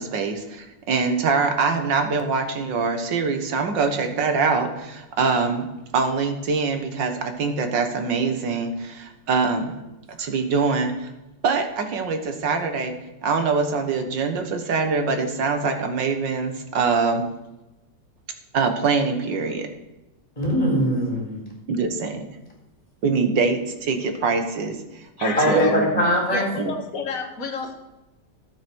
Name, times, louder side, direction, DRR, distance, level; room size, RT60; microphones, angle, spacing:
voice 1, 0.0-5.7 5.9-9.7 10.2-11.1 11.4-12.9 13.2-17.2 18.5-19.7 21.7-22.2 23.0-26.0 26.6-26.7, right 4 dB, 80° right, 6 dB, 2.1 m, -24 dB
voice 2, 20.4-21.4 25.4-26.5, equal, 20° left, -2 dB, 4.4 m, -21 dB
voice 3, 25.2-25.7 26.3-27.7, left 5 dB, 50° left, 3 dB, 2.0 m, -30 dB
13.0 x 8.3 x 6.2 m, 0.99 s
omnidirectional pair, 1.9 m